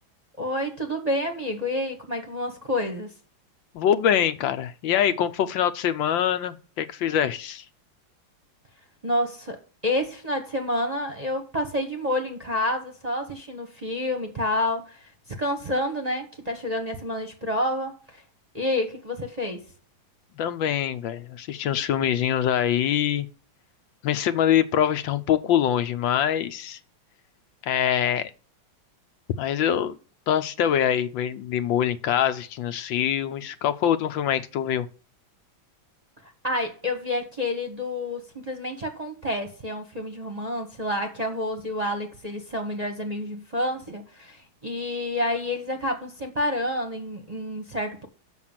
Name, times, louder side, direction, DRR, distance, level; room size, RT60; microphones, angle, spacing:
voice 1, 0.4-3.1 9.0-15.1 15.4-18.2 18.5-19.6 36.4-48.1, left 1 dB, 25° right, 1.0 m, -29 dB
voice 2, 3.7-7.6 20.4-23.3 24.0-26.8 27.6-28.3 29.4-29.9 30.3-34.9, left 9 dB, 70° left, 1.5 m, -24 dB
6.8 x 6.3 x 7.3 m
omnidirectional pair, 2.2 m